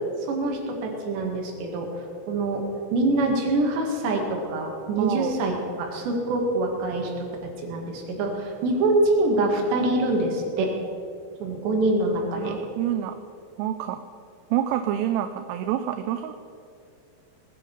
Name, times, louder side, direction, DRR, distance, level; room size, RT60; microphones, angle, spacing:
voice 1, 0.3-1.9 2.3-2.6 2.9-7.3 7.6-10.7 11.4-12.6, right 2 dB, 65° right, 1 dB, 4.0 m, -25 dB
voice 2, 5.0-5.4 12.4-13.2 13.6-14.0 14.5-16.5, right 11 dB, 85° right, 8 dB, 3.1 m, -27 dB
20.5 x 10.5 x 5.5 m, 2.4 s
omnidirectional pair, 5.8 m